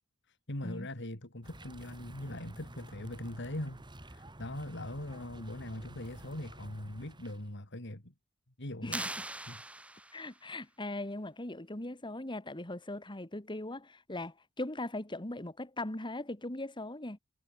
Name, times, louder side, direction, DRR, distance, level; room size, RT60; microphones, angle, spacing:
voice 1, 0.3-8.1 8.6-9.0 9.5-9.6, left 1 dB, 60° left, 3.6 m, -41 dB
sound 1, 1.4-7.5, right 1 dB, 20° right, 3.5 m, -51 dB
voice 2, 8.8-9.1 10.1-17.2, left 1 dB, 25° left, 2.2 m, -39 dB
sound 2, 8.9-10.4, right 1 dB, 5° right, 2.7 m, -40 dB
head